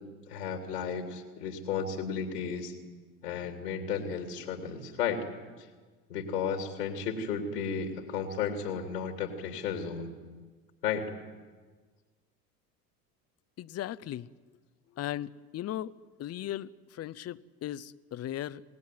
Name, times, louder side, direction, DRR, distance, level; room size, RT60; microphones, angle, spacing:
voice 1, 0.3-2.7 3.2-5.2 6.1-10.1 10.8-11.1, left 6 dB, 80° left, 4 dB, 3.1 m, -33 dB
voice 2, 13.6-14.3 15.0-15.9 16.2-18.6, left 12 dB, 30° left, 17 dB, 0.8 m, -37 dB
27.5 x 19.0 x 9.4 m, 1.4 s
hypercardioid pair, 70°, 47 cm